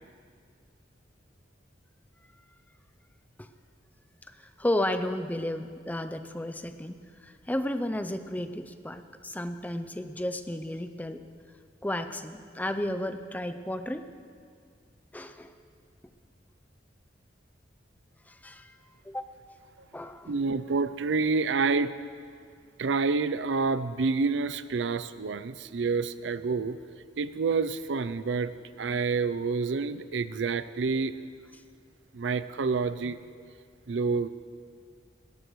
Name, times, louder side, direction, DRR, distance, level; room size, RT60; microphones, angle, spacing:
voice 1, 4.3-11.2 11.8-14.0 15.1-15.5 18.3-18.8 19.0-19.3 19.9-20.3, left 1 dB, 10° left, 9 dB, 0.5 m, -33 dB
voice 2, 20.3-21.9 22.8-26.8 27.2-28.5 28.8-31.1 32.1-33.2 33.9-34.3, right 4 dB, 75° right, 14 dB, 0.5 m, -28 dB
19.0 x 17.0 x 3.2 m, 2.1 s
head